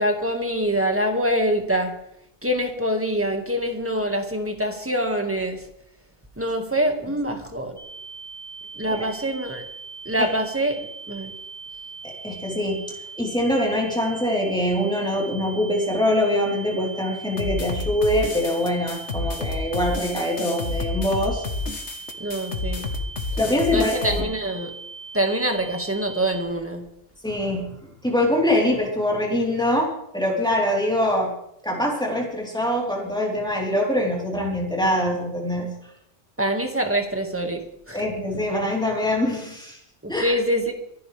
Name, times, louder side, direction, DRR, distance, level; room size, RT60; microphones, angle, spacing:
voice 1, 0.0-2.0 2.4-5.7 6.4-7.8 8.8-9.6 10.1-10.8 11.1-11.3 22.2-22.9 23.7-24.7 25.1-26.9 36.4-38.1 40.0-40.7, equal, 10° right, 3 dB, 1.9 m, -25 dB
sound 1, 7.8-26.4, right 4 dB, 25° right, 3.5 m, -40 dB
voice 2, 12.0-12.8 13.2-21.4 23.4-24.2 27.2-27.7 28.0-31.3 31.6-35.7 37.9-39.8 40.1-40.4, left 1 dB, 5° left, -3 dB, 3.9 m, -24 dB
sound 2, 17.4-24.2, left 3 dB, 75° left, 1.7 m, -30 dB
25.0 x 11.5 x 3.4 m, 0.76 s
omnidirectional pair, 1.2 m